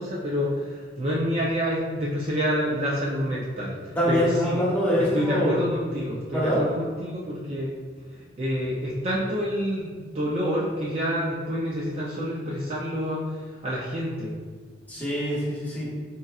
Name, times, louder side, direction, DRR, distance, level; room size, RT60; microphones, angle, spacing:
voice 1, 0.0-4.6 5.0-7.7 8.1-13.3 13.6-14.3, equal, 35° right, -6 dB, 0.4 m, -28 dB
voice 2, 4.0-5.7 6.3-6.6 14.9-15.9, equal, 10° left, -7 dB, 1.0 m, -24 dB
4.1 x 3.7 x 2.4 m, 1.5 s
head